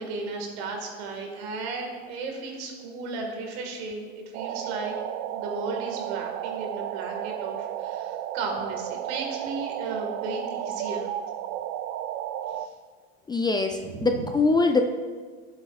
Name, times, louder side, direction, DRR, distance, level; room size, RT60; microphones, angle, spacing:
voice 1, 0.0-4.9 5.3-11.1 12.5-12.7 13.8-14.3, right 3 dB, 70° right, 2 dB, 2.0 m, -35 dB
sound 1, 4.3-12.7, right 11 dB, 50° right, 0.5 m, -33 dB
voice 2, 13.3-14.8, left 3 dB, 15° left, 5 dB, 0.4 m, -23 dB
11.5 x 7.8 x 2.5 m, 1.5 s
supercardioid pair, 105°, 33 cm